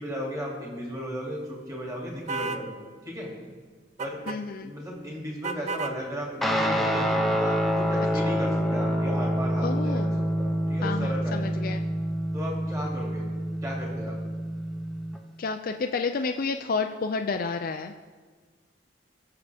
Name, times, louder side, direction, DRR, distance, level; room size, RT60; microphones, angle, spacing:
voice 1, 0.0-2.7 3.0-3.3 4.0-4.2 4.6-10.1 10.4-11.4 12.3-13.3 13.6-14.2, equal, 20° right, -3 dB, 2.5 m, -35 dB
sound 1, 2.3-2.7 4.0-4.4 5.4-6.0, right 3 dB, 40° right, 0.5 m, -32 dB
voice 2, 4.3-4.7 8.2-8.4 9.6-10.2 10.8-11.8 15.4-18.1, left 4 dB, 50° left, 5 dB, 0.4 m, -30 dB
Guitar, 6.4-15.2, equal, ahead, 0.8 m, -27 dB
20.0 x 6.8 x 3.5 m, 1.5 s
head